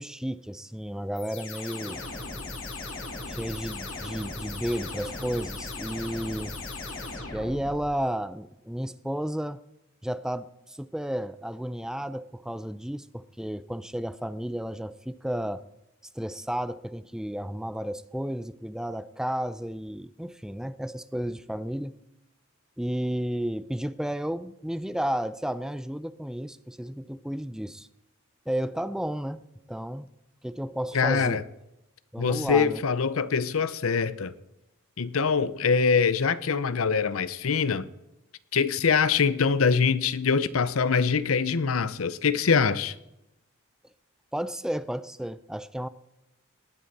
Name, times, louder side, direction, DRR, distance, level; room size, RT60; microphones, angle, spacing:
voice 1, 0.0-2.0 3.3-6.6 7.3-9.6 10.0-15.6 16.1-22.0 22.8-27.9 28.5-30.1 30.4-31.4 32.1-32.8 44.3-45.9, equal, 5° right, 0.4 m, -32 dB
sound 1, 1.1-8.0, left 3 dB, 70° left, 2.9 m, -37 dB
voice 2, 30.9-31.4 32.2-34.3 35.0-37.9 38.5-42.9, left 5 dB, 90° left, 0.7 m, -24 dB
18.5 x 9.5 x 4.2 m
head